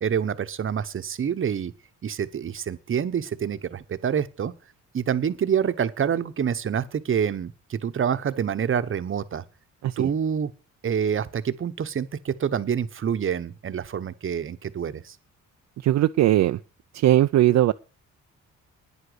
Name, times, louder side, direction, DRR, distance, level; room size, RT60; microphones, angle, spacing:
voice 1, 0.0-1.7 2.0-4.5 4.9-9.4 10.0-10.5 10.8-15.2, right 8 dB, 45° right, 1.1 m, -27 dB
voice 2, 15.8-16.6 16.9-17.7, right 14 dB, 65° right, 0.6 m, -19 dB
9.8 x 8.1 x 8.0 m
cardioid pair, 90°, 30 cm